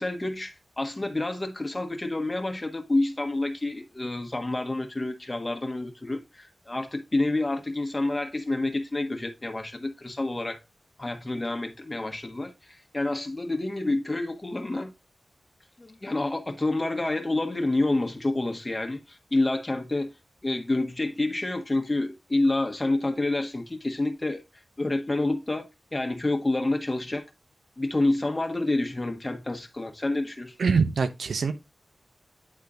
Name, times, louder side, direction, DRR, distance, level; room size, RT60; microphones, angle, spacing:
voice 1, 0.0-10.6 11.0-14.9 15.8-20.1 20.4-24.4 24.8-25.7 25.9-27.2 27.8-30.5, left 2 dB, 30° left, 1.4 m, -28 dB
voice 2, 30.6-31.5, right 5 dB, 85° right, 0.9 m, -24 dB
9.9 x 3.6 x 3.9 m
cardioid pair, 40°, 0 cm